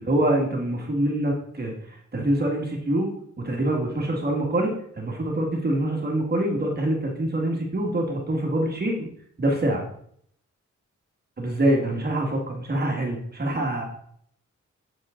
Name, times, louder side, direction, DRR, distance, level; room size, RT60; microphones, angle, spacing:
voice 1, 0.1-3.1 3.4-9.1 9.4-9.8 11.4-13.8, right 1 dB, 35° right, 0 dB, 1.8 m, -25 dB
7.8 x 7.5 x 3.7 m, 0.65 s
wide cardioid pair, 155°, 30 cm